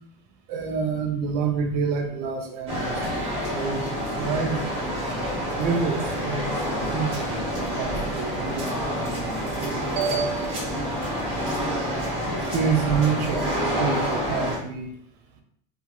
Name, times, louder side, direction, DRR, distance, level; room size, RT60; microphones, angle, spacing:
voice 1, 0.5-4.6 5.6-10.7 12.5-13.4 13.8-14.9, right 5 dB, 60° right, 3 dB, 0.5 m, -28 dB
sound 1, 2.7-14.6, equal, 30° right, 0.9 m, -28 dB
2.4 x 2.1 x 2.8 m, 0.67 s
cardioid pair, 180°, 21 cm